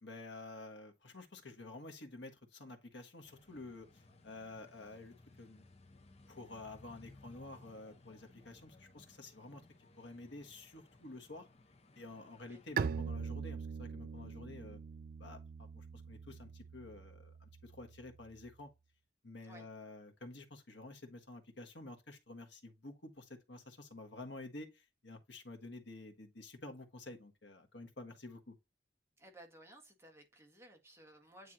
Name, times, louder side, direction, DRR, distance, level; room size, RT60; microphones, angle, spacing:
voice 1, 0.0-5.6 6.3-9.6 10.0-11.5 11.9-14.8 15.2-18.7 19.2-28.6, left 2 dB, 70° left, 1.5 m, -50 dB
sound 1, 3.2-12.9, left 2 dB, 35° left, 1.2 m, -61 dB
Bowed string instrument, 12.8-18.3, right 6 dB, 55° right, 0.4 m, -42 dB
voice 2, 29.2-31.5, right 1 dB, 15° right, 1.7 m, -57 dB
9.4 x 3.4 x 2.9 m
head